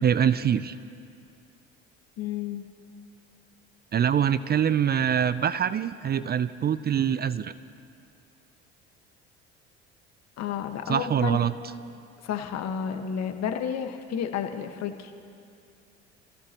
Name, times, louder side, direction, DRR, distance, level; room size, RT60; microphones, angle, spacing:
voice 1, 0.0-0.7 3.9-7.5 10.9-11.5, right 8 dB, 30° right, 15 dB, 0.5 m, -24 dB
voice 2, 2.2-2.6 10.4-11.4 12.2-15.1, left 8 dB, 55° left, 6 dB, 1.5 m, -31 dB
28.5 x 16.5 x 3.0 m, 2.4 s
hypercardioid pair, 70°, 32 cm